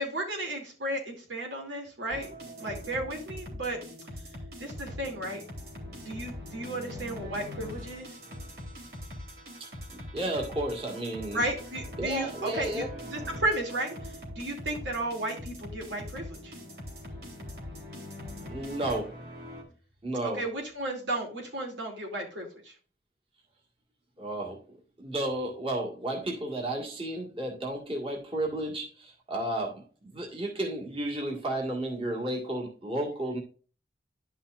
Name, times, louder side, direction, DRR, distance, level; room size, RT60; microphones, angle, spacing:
voice 1, 0.0-3.8 4.6-5.4 5.8-8.2 11.3-16.5 20.2-22.7, right 1 dB, 80° right, 0 dB, 2.8 m, -34 dB
sound 1, 2.1-19.6, left 1 dB, 55° right, 3.0 m, -42 dB
voice 2, 9.9-11.4 12.0-12.9 18.5-19.2 20.0-20.4 24.2-24.6 25.0-33.4, right 1 dB, 30° right, -2 dB, 1.7 m, -32 dB
11.5 x 5.6 x 2.5 m, 0.38 s
head